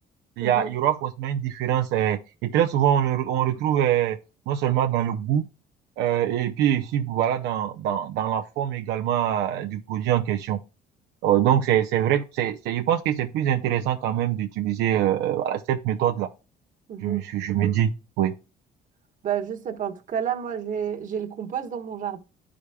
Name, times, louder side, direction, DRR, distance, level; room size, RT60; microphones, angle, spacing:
voice 1, 0.4-4.2 4.5-5.5 6.0-10.6 11.2-16.3 17.0-17.9 18.2-18.3, right 11 dB, 85° right, 0.6 m, -24 dB
voice 2, 16.9-17.3 19.2-22.2, right 8 dB, 50° right, 1.3 m, -30 dB
11.0 x 5.0 x 2.2 m
cardioid pair, 110°, 17 cm